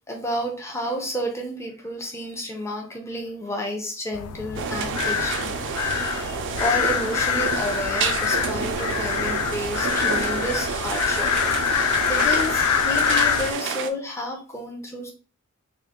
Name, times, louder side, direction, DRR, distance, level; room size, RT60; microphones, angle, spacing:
voice 1, 0.1-15.1, left 1 dB, 10° left, 1 dB, 0.6 m, -31 dB
sound 1, 4.1-13.5, left 8 dB, 90° left, 0.3 m, -25 dB
sound 2, 4.5-13.9, right 6 dB, 55° right, 0.4 m, -29 dB
3.6 x 2.2 x 3.5 m, 0.36 s
head